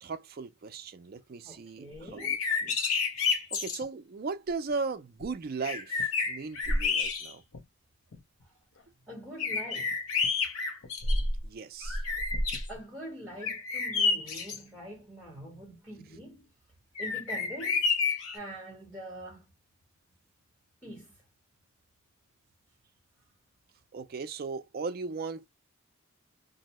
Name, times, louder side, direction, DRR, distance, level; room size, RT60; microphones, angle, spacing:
voice 1, 0.0-2.8 3.5-7.4 11.4-12.0 23.9-25.5, right 4 dB, 40° right, 0.3 m, -37 dB
voice 2, 1.4-2.4 9.1-10.0 12.7-16.5 17.0-17.9 18.3-19.5 20.8-21.2, equal, 5° right, 1.0 m, -44 dB
sound 1, 2.1-3.8 5.2-5.3 5.6-7.6 8.1-8.2 9.4-11.5 11.8-12.7 13.4-14.6 17.0-18.4, left 4 dB, 70° left, 0.8 m, -29 dB
2.7 x 2.1 x 2.9 m
head